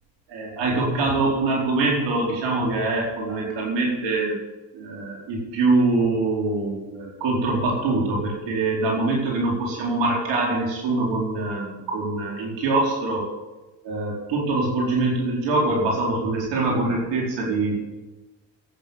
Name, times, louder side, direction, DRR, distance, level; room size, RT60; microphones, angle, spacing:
voice 1, 0.3-4.4 4.7-13.2 13.8-17.8, right 2 dB, 85° right, -2 dB, 4.6 m, -24 dB
13.0 x 9.1 x 9.6 m, 1.1 s
supercardioid pair, 60°, 43 cm